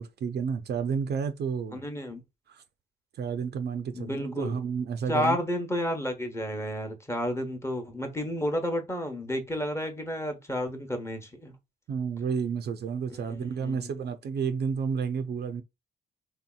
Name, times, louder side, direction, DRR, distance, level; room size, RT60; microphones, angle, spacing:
voice 1, 0.0-1.8 2.5-2.6 3.1-5.4 11.9-15.6, right 6 dB, 55° right, 0.5 m, -31 dB
voice 2, 1.7-2.2 3.9-4.5 5.1-11.5 13.6-13.9, left 1 dB, 15° left, 0.9 m, -31 dB
3.4 x 2.8 x 2.2 m
cardioid pair, 90°, 20 cm